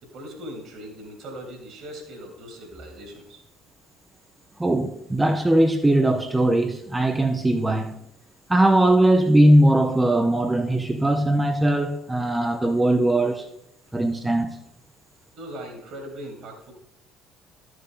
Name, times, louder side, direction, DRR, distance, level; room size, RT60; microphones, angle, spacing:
voice 1, 0.0-3.4 15.3-16.7, equal, 55° right, 2.6 m, -39 dB
voice 2, 4.6-8.0 8.5-13.5 13.9-14.6, right 1 dB, 15° right, 0.7 m, -20 dB
12.0 x 6.3 x 3.7 m
figure-of-eight pair, 55°, 0 cm